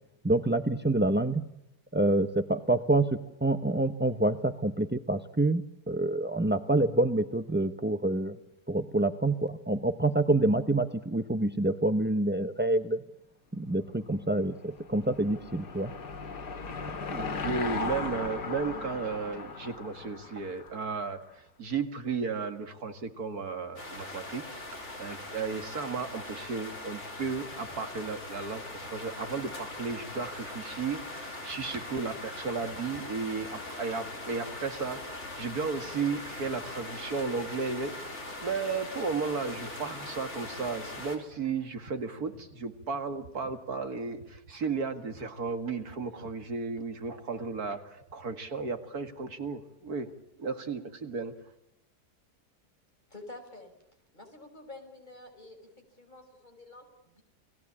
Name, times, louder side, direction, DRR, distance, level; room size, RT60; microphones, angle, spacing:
voice 1, 0.2-1.4 1.9-8.4 8.7-13.0 13.5-15.9, right 2 dB, 15° right, 9 dB, 0.4 m, -27 dB
Car passing by / Engine, 14.3-21.1, left 4 dB, 85° left, 2.6 m, -37 dB
voice 2, 17.1-24.4 24.7-50.1 50.4-51.3, right 5 dB, 65° right, 8 dB, 2.4 m, -34 dB
sound 1, 23.8-41.2, left 2 dB, 45° left, 4.5 m, -41 dB
voice 3, 53.1-53.7 54.1-57.2, left 2 dB, 25° left, 4 dB, 6.2 m, -49 dB
30.0 x 19.5 x 8.6 m, 0.86 s
omnidirectional pair, 1.7 m